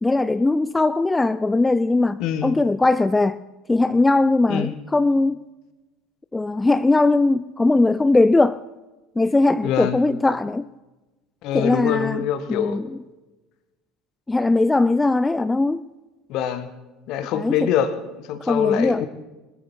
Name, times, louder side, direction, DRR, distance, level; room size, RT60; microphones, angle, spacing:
voice 1, 0.0-3.4 3.7-5.5 6.3-8.6 9.2-10.7 11.5-13.0 14.3-15.8 17.3-17.7 18.4-19.0, left 2 dB, 10° left, 14 dB, 0.4 m, -20 dB
voice 2, 2.2-2.5 4.5-4.7 9.6-10.0 11.4-12.8 16.3-16.7 17.1-19.1, left 9 dB, 50° left, 12 dB, 1.6 m, -24 dB
21.0 x 14.0 x 4.6 m, 1.1 s
figure-of-eight pair, 65°, 0 cm